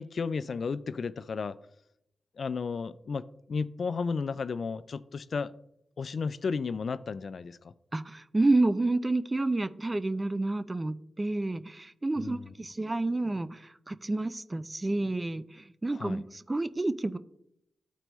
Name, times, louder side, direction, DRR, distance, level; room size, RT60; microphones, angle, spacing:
voice 1, 0.0-1.6 2.4-3.2 3.5-5.5 6.0-7.7 12.2-12.5 15.9-16.2, left 5 dB, 65° left, 0.3 m, -33 dB
voice 2, 7.9-17.2, right 2 dB, 30° right, 0.5 m, -29 dB
12.5 x 4.5 x 3.0 m
cardioid pair, 50°, 0 cm